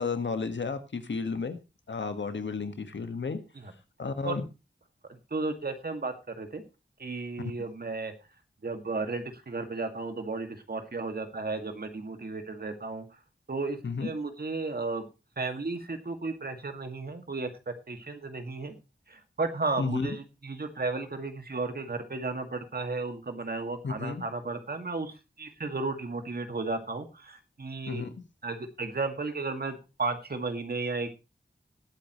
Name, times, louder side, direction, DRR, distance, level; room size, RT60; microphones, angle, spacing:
voice 1, 0.0-1.6 1.9-3.4 4.0-4.4 7.4-7.5 13.8-14.1 19.8-20.2 23.8-24.2 27.9-28.2, left 4 dB, 90° left, 8 dB, 1.6 m, -32 dB
voice 2, 5.1-6.6 7.0-8.1 8.6-13.1 13.5-15.1 15.4-18.8 19.1-28.1 28.4-31.1, right 3 dB, 55° right, 6 dB, 2.1 m, -34 dB
20.0 x 8.5 x 3.1 m, 0.29 s
wide cardioid pair, 90°, 19 cm